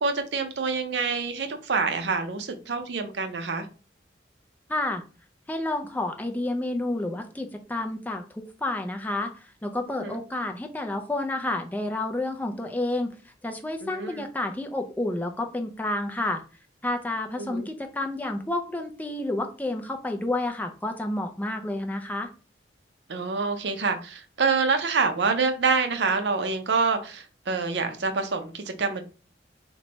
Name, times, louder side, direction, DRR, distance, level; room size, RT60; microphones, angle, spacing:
voice 1, 0.0-3.7 10.0-10.2 13.8-14.2 17.4-17.7 23.1-29.0, right 4 dB, 65° right, 0.5 m, -26 dB
voice 2, 4.7-5.0 5.5-13.1 13.4-16.4 16.8-22.3, left 2 dB, 10° left, 0.4 m, -30 dB
3.0 x 2.2 x 4.0 m
head